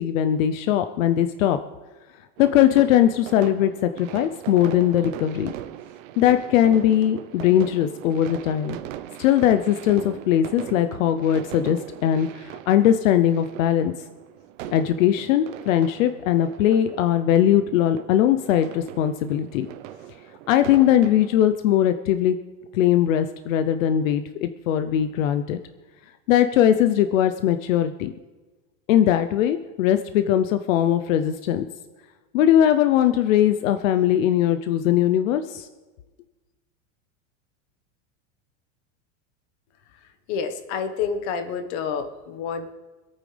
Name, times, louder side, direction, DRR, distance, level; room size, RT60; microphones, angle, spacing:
voice 1, 0.0-1.6 2.4-5.5 6.2-8.8 9.2-13.9 14.7-19.7 20.5-22.4 22.7-25.6 26.3-28.1 28.9-31.7 32.3-35.7, left 11 dB, 85° left, 10 dB, 0.8 m, -20 dB
sound 1, 2.4-21.5, right 12 dB, 80° right, 1.0 m, -40 dB
voice 2, 40.3-42.8, left 6 dB, 55° left, 8 dB, 1.4 m, -28 dB
25.5 x 9.0 x 3.4 m, 1.2 s
supercardioid pair, 160°, 38 cm